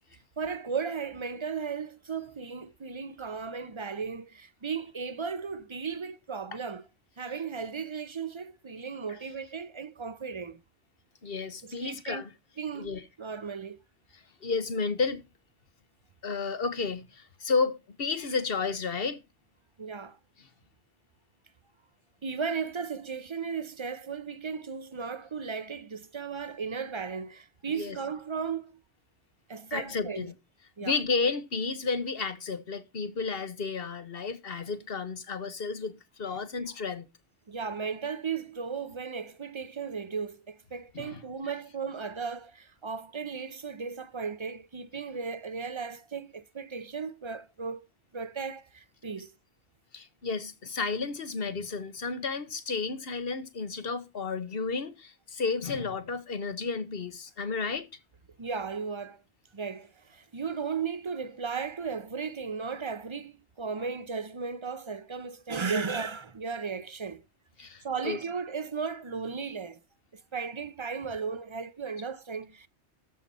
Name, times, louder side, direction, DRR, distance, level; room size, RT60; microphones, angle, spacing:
voice 1, 0.4-6.8 7.2-10.6 11.6-12.2 12.6-12.9 13.2-13.8 19.8-20.2 22.2-28.8 29.5-30.3 30.8-31.0 37.5-47.9 48.1-49.3 58.4-59.2 59.5-67.3 67.6-69.8 70.1-72.7, right 5 dB, 30° right, 0.6 m, -35 dB
voice 2, 11.2-12.3 12.8-13.0 14.4-15.3 16.2-19.2 27.8-28.0 29.7-30.3 30.8-37.1 40.9-41.2 49.9-57.9 67.6-68.2, left 4 dB, 60° left, 1.4 m, -32 dB
13.0 x 5.8 x 5.3 m
omnidirectional pair, 1.1 m